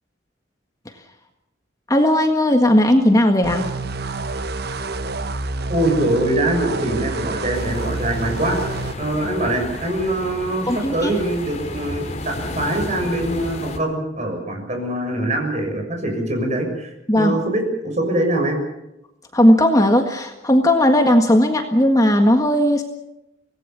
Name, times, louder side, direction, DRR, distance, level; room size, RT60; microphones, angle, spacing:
voice 1, 1.9-3.7 10.7-11.1 17.1-17.4 19.3-22.8, left 1 dB, 20° left, 4 dB, 1.7 m, -16 dB
sound 1, 3.4-9.0, right 3 dB, 55° right, 1.0 m, -28 dB
voice 2, 5.7-18.6, right 1 dB, 35° right, 4 dB, 6.7 m, -23 dB
sound 2, 7.5-13.8, left 1 dB, 35° left, 3.1 m, -32 dB
25.5 x 19.0 x 7.1 m, 0.88 s
head